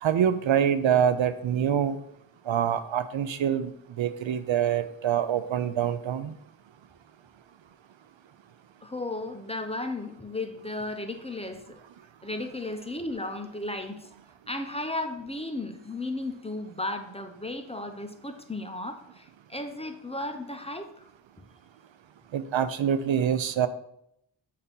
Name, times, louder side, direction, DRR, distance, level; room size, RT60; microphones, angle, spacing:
voice 1, 0.0-2.0 2.5-3.7 4.0-6.3 22.3-23.7, right 9 dB, 75° right, 12 dB, 0.5 m, -25 dB
voice 2, 8.8-11.8 12.2-14.1 14.5-21.1, left 2 dB, 15° left, 6 dB, 0.7 m, -35 dB
6.6 x 2.8 x 5.3 m, 0.75 s
cardioid pair, 50°, 47 cm